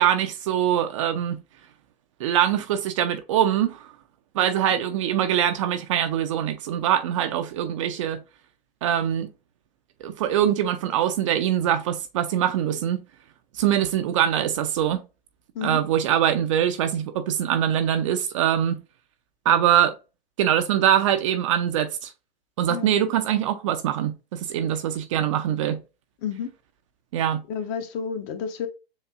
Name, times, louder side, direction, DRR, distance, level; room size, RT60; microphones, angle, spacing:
voice 1, 0.0-1.4 2.2-3.9 4.3-8.2 8.8-9.3 10.0-13.0 13.5-15.0 15.6-18.8 19.5-19.9 20.4-22.1 22.6-25.8 27.1-27.4, right 10 dB, 30° right, 0.5 m, -23 dB
voice 2, 27.5-28.7, left 7 dB, 30° left, 0.7 m, -30 dB
7.1 x 2.6 x 2.4 m
figure-of-eight pair, 110°, 31 cm